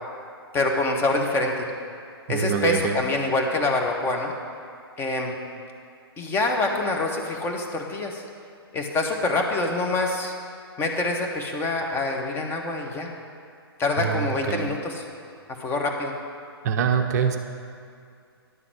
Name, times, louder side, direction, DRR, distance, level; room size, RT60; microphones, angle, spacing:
voice 1, 0.5-1.7 2.3-4.3 5.0-5.4 6.2-8.2 8.7-10.3 10.8-13.1 13.8-15.0 15.6-16.1, left 2 dB, 15° left, 2 dB, 0.9 m, -25 dB
voice 2, 2.3-3.0 14.0-14.7 16.6-17.4, right 7 dB, 40° right, 5 dB, 0.5 m, -24 dB
11.0 x 4.0 x 7.6 m, 2.3 s
figure-of-eight pair, 120°, 13 cm